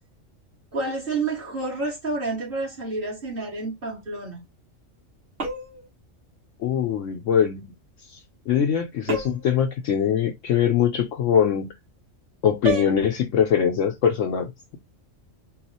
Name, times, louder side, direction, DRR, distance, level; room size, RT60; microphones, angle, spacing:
voice 1, 0.7-4.4, right 3 dB, 40° right, 2.1 m, -29 dB
sound 1, 5.4-5.9 9.1-9.6 12.6-13.0, right 3 dB, 65° right, 1.5 m, -29 dB
voice 2, 6.6-7.7 8.1-8.2 8.5-11.7 12.4-14.8, left 8 dB, 75° left, 0.9 m, -22 dB
4.1 x 2.4 x 4.1 m
omnidirectional pair, 1.4 m